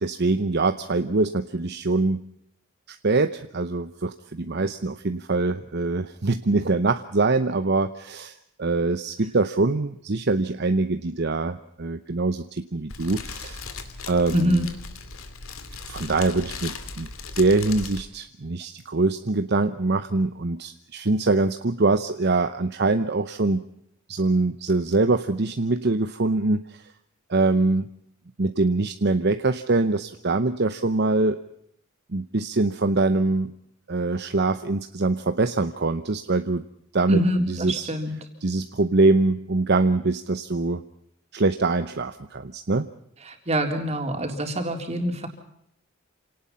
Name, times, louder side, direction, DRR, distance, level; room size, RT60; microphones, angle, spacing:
voice 1, 0.0-2.3 2.9-13.6 14.1-14.6 15.9-17.1 17.4-23.6 24.1-26.9 27.3-27.9 28.4-31.4 32.1-33.5 33.9-36.6 36.9-37.2 37.5-37.9 38.4-40.8 41.3-42.9, right 3 dB, 55° right, 9 dB, 0.9 m, -23 dB
Fire, 12.9-18.0, left 4 dB, 80° left, 2.6 m, -37 dB
voice 2, 14.3-14.7 37.1-38.2 43.2-45.3, equal, 30° right, 4 dB, 3.8 m, -25 dB
27.5 x 18.5 x 5.6 m, 0.74 s
head